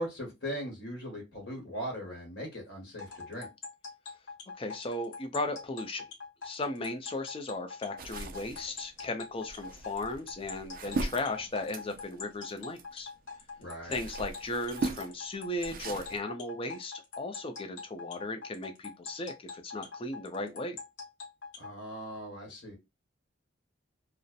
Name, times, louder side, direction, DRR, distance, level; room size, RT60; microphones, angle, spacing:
voice 1, 0.0-3.5 13.6-14.0 21.6-22.8, equal, 70° left, 1.1 m, -39 dB
sound 1, 3.0-21.7, left 4 dB, 90° left, 0.9 m, -43 dB
voice 2, 4.6-6.1 6.4-13.1 13.9-20.8, left 2 dB, 30° left, 0.5 m, -36 dB
sound 2, 8.0-13.2 13.6-16.2, right 3 dB, 50° right, 0.4 m, -39 dB
2.6 x 2.0 x 2.3 m
head